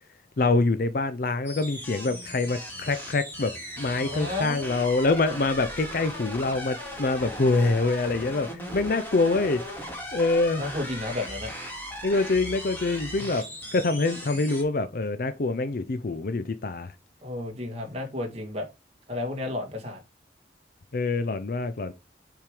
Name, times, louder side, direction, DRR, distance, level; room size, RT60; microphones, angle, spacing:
voice 1, 0.4-3.5 3.8-9.6 10.1-10.6 12.0-13.4 13.7-16.9 20.9-21.9, left 3 dB, 55° left, 0.5 m, -25 dB
sound 1, 1.4-14.6, equal, 10° left, 2.2 m, -38 dB
voice 2, 4.0-4.9 10.6-11.5 13.2-13.3 17.2-18.7 19.1-20.0, left 2 dB, 35° right, 2.0 m, -32 dB
7.4 x 3.7 x 4.9 m
head